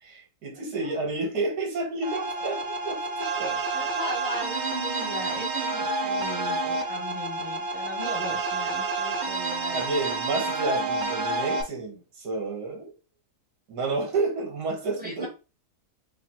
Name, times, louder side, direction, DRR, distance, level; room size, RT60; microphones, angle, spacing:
voice 1, 0.0-3.6 9.7-12.9 13.7-15.3, right 3 dB, 80° right, 1.8 m, -30 dB
voice 2, 0.9-1.3 2.4-2.6 3.7-9.8 15.0-15.3, left 1 dB, 5° right, 0.9 m, -38 dB
sound 1, 2.0-11.6, right 3 dB, 55° right, 0.5 m, -29 dB
5.0 x 2.4 x 3.0 m
omnidirectional pair, 1.7 m